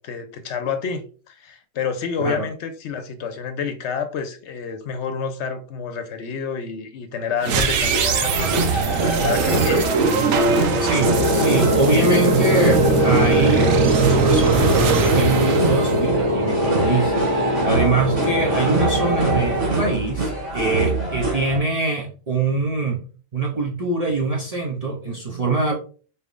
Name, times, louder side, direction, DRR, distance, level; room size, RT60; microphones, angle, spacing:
voice 1, 0.0-10.0, left 6 dB, 70° left, 0.8 m, -29 dB
sound 1, 7.4-16.6, right 5 dB, 85° right, 1.0 m, -21 dB
sound 2, 7.6-21.6, right 2 dB, 65° right, 2.0 m, -25 dB
voice 2, 10.8-23.0 23.3-25.7, right 3 dB, 45° right, 0.5 m, -24 dB
sound 3, 11.0-19.7, left 1 dB, 30° right, 1.0 m, -22 dB
4.2 x 3.4 x 2.4 m
omnidirectional pair, 1.3 m